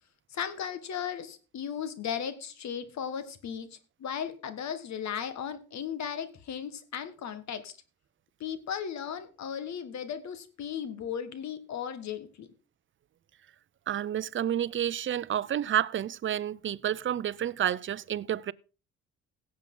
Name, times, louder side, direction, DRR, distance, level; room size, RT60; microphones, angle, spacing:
voice 1, 0.3-7.7 8.4-12.5, left 8 dB, 65° left, 1.6 m, -36 dB
voice 2, 13.9-18.5, right 10 dB, 40° right, 0.6 m, -30 dB
17.0 x 7.5 x 3.8 m
cardioid pair, 90°, 30 cm